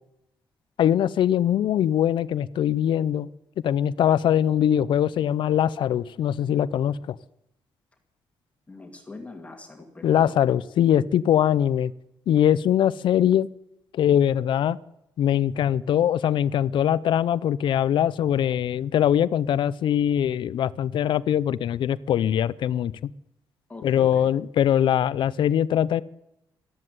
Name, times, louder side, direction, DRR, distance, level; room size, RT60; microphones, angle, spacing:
voice 1, 0.8-3.3 3.6-7.2 10.0-11.9 12.3-13.5 13.9-14.8 15.2-22.9 23.8-26.0, left 10 dB, 65° left, 19 dB, 0.5 m, -22 dB
voice 2, 8.7-10.4 23.7-24.3, left 3 dB, 15° left, 3 dB, 2.3 m, -42 dB
13.0 x 11.0 x 9.5 m, 0.83 s
cardioid pair, 125°, 9 cm